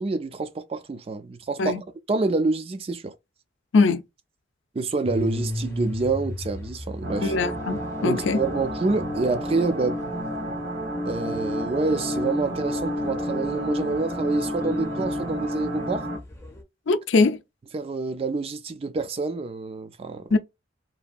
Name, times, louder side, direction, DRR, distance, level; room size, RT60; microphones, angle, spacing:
voice 1, 0.0-3.2 4.7-7.3 8.0-10.0 11.0-16.1 17.7-20.4, right 3 dB, 30° right, 0.3 m, -27 dB
sound 1, 5.0-16.6, left 1 dB, 15° left, 0.7 m, -38 dB
sound 2, 7.0-16.2, equal, 65° right, 1.1 m, -30 dB
voice 2, 7.2-8.4 16.9-17.4 20.3-20.4, left 3 dB, 75° left, 0.4 m, -21 dB
2.8 x 2.5 x 2.3 m
head